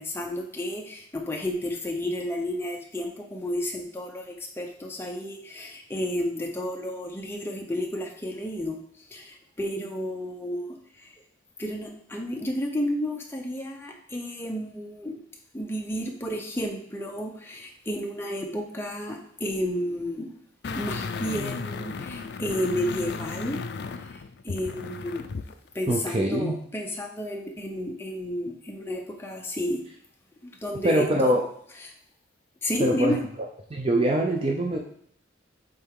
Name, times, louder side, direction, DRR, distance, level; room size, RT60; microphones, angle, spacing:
voice 1, 0.0-11.1 11.6-15.2 15.5-20.3 20.7-23.6 23.9-25.3 25.7-29.8 30.4-31.4 31.8-31.9 32.6-33.2, equal, 10° left, 1 dB, 0.8 m, -32 dB
sound 1, 20.6-25.5 25.9-26.0, left 4 dB, 55° left, 0.4 m, -34 dB
voice 2, 25.9-26.6 30.8-31.4 32.8-33.2 33.7-34.8, right 1 dB, 30° right, 0 dB, 0.5 m, -23 dB
8.0 x 3.4 x 3.7 m, 0.65 s
head